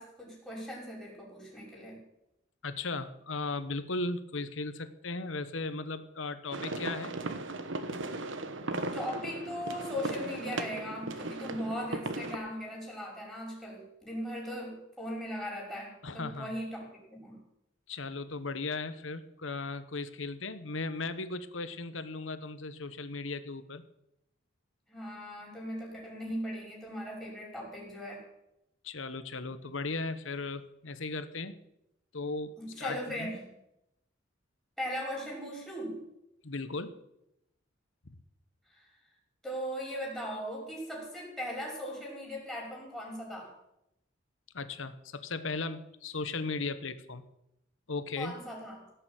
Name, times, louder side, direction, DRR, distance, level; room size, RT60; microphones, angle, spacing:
voice 1, 0.0-2.0 8.9-17.4 24.9-28.2 32.6-33.4 34.8-36.0 38.6-38.9 39.4-43.5 48.2-48.9, equal, 5° left, -4 dB, 5.8 m, -39 dB
voice 2, 2.6-7.1 16.0-16.5 17.9-23.8 28.8-31.6 32.1-33.4 36.4-37.0 44.5-47.2 47.9-48.4, left 3 dB, 75° left, 12 dB, 1.2 m, -37 dB
sound 1, 6.5-12.4, right 2 dB, 70° right, 1.3 m, -37 dB
17.0 x 6.9 x 9.0 m, 0.86 s
head